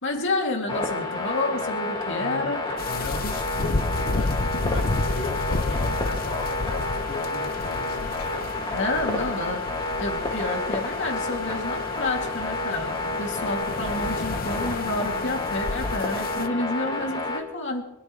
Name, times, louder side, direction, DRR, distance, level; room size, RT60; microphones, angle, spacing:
voice 1, 0.0-2.6 8.7-9.6 10.0-18.0, left 2 dB, 60° left, 1 dB, 2.7 m, -29 dB
sound 1, 0.7-17.4, left 2 dB, 25° left, 2.4 m, -30 dB
voice 2, 2.2-2.5 2.9-8.5, left 2 dB, 80° left, -1 dB, 2.2 m, -36 dB
sound 2, 2.8-16.5, left 2 dB, 45° left, 0.7 m, -31 dB
25.5 x 13.5 x 3.3 m, 0.92 s
head